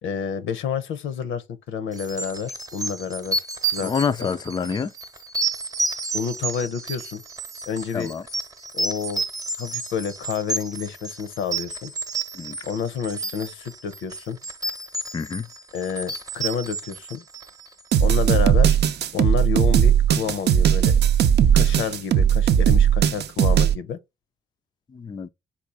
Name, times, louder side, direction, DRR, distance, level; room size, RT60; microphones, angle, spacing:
voice 1, 0.0-3.4 3.6-3.9 4.2-4.3 6.1-7.2 7.7-8.1 8.7-9.2 9.6-11.9 12.6-14.4 15.7-17.2 18.0-18.8 19.1-21.0 21.5-24.0, left 7 dB, 80° left, 0.8 m, -29 dB
sound 1, 2.0-17.8, right 3 dB, 20° right, 0.9 m, -31 dB
voice 2, 3.8-4.9 7.9-8.2 12.3-12.6 15.1-15.5 24.9-25.3, left 6 dB, 20° left, 0.4 m, -27 dB
sound 2, 17.9-23.7, right 9 dB, 60° right, 0.5 m, -18 dB
4.2 x 2.4 x 4.7 m
cardioid pair, 90°, 20 cm